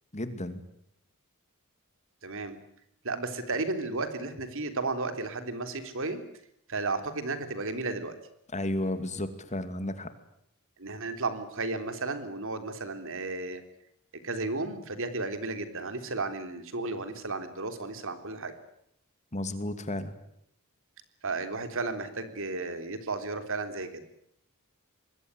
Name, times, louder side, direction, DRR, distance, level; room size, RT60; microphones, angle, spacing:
voice 1, 0.1-0.6 8.5-10.1 19.3-20.1, left 1 dB, 30° left, 10 dB, 2.5 m, -33 dB
voice 2, 2.2-2.6 3.0-6.2 6.7-8.1 10.8-13.6 14.2-18.5 21.2-24.0, right 3 dB, 60° right, 9 dB, 3.4 m, -33 dB
25.5 x 21.0 x 9.7 m, 0.74 s
head